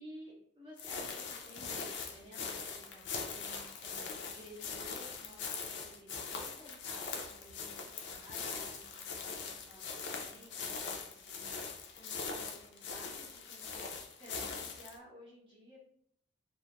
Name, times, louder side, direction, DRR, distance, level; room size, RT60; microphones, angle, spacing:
voice 1, 0.0-13.8 14.2-15.8, equal, 30° right, -9 dB, 0.5 m, -55 dB
sound 1, 0.8-15.0, left 5 dB, 65° left, 0.4 m, -42 dB
2.2 x 2.1 x 2.8 m, 0.68 s
head